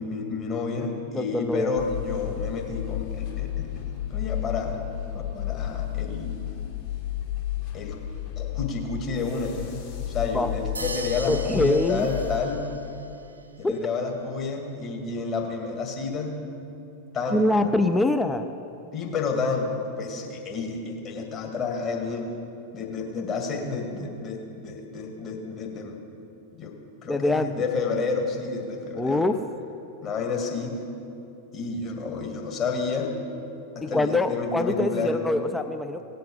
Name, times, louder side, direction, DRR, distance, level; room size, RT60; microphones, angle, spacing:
voice 1, 0.0-4.8 5.1-6.4 7.7-8.0 8.4-9.6 10.1-12.7 13.6-16.4 17.1-17.6 18.9-19.7 20.0-22.3 22.7-26.0 26.6-26.7 27.0-29.2 30.0-30.8 31.5-33.1 33.8-35.2, left 4 dB, 30° left, 1 dB, 2.1 m, -30 dB
voice 2, 1.1-1.7 10.3-10.5 11.3-12.1 13.6-13.7 17.3-18.5 27.1-27.5 28.9-29.4 33.8-36.0, left 2 dB, 10° left, 8 dB, 0.5 m, -24 dB
sound 1, 1.8-12.4, left 12 dB, 50° left, 3.0 m, -32 dB
sound 2, 10.7-13.0, right 3 dB, 80° right, 0.7 m, -38 dB
17.5 x 7.7 x 5.3 m, 2.7 s
figure-of-eight pair, 90°, 0 cm